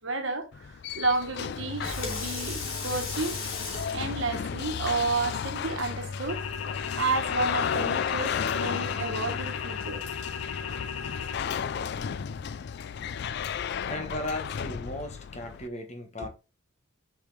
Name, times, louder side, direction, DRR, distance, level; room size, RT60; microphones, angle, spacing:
voice 1, 0.0-3.4 3.9-6.4 7.0-10.0, right 3 dB, 60° right, 1.4 m, -31 dB
sound 1, 0.5-15.7, left 7 dB, 50° left, 0.3 m, -33 dB
Water tap faucet / Sink (filling or washing), 1.8-7.1, left 3 dB, 70° left, 3.0 m, -39 dB
sound 2, 6.3-11.4, left 7 dB, 85° left, 0.7 m, -37 dB
voice 2, 13.9-16.3, left 1 dB, 30° left, 1.3 m, -36 dB
6.6 x 4.9 x 3.5 m
head